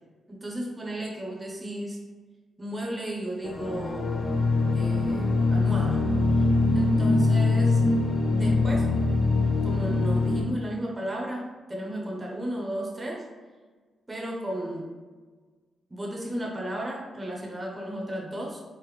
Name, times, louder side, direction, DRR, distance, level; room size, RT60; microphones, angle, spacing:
voice 1, 0.3-2.0 2.6-4.2 4.7-6.0 6.4-6.5 6.7-7.9 8.3-8.9 9.6-13.3 14.1-14.9 15.9-18.6, right 1 dB, 15° right, -2 dB, 0.6 m, -34 dB
sound 1, 3.4-10.4, left 3 dB, 35° left, 0.4 m, -23 dB
3.2 x 2.1 x 3.1 m, 1.4 s
cardioid pair, 125°, 0 cm